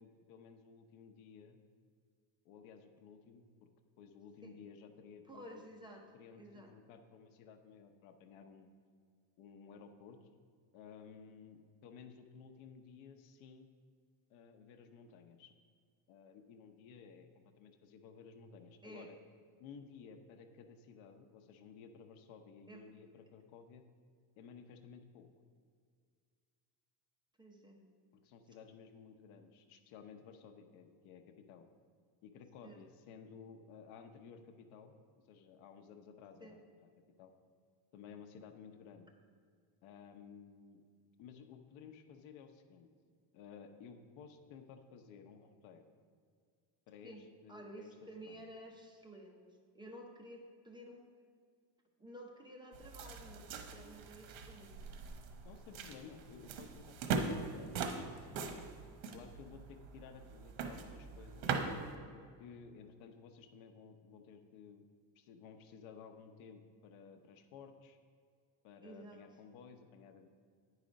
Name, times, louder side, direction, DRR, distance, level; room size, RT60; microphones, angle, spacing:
voice 1, 0.0-1.6 2.4-3.5 4.0-5.7 6.1-8.7 9.4-10.2 10.7-13.7 14.3-15.5 16.1-19.2 19.6-23.8 24.4-25.3 28.1-31.6 32.2-34.9 35.3-36.9 37.2-37.3 37.9-39.1 39.8-40.8 41.2-42.9 43.3-45.8 46.9-47.9 48.2-48.5 55.4-58.6 59.1-61.5 62.1-64.9 65.2-68.0 68.6-70.3, left 6 dB, 80° left, 7 dB, 0.9 m, -55 dB
voice 2, 5.2-6.0 6.4-6.7 18.8-19.1 22.7-22.8 27.4-27.9 32.6-32.8 36.4-36.5 47.0-47.2 47.5-51.1 52.0-54.8 68.8-69.2, right 1 dB, 10° right, 0 dB, 0.7 m, -52 dB
sound 1, 52.7-61.9, right 5 dB, 80° right, 1.0 m, -41 dB
9.6 x 5.0 x 5.1 m, 2.1 s
cardioid pair, 150°, 47 cm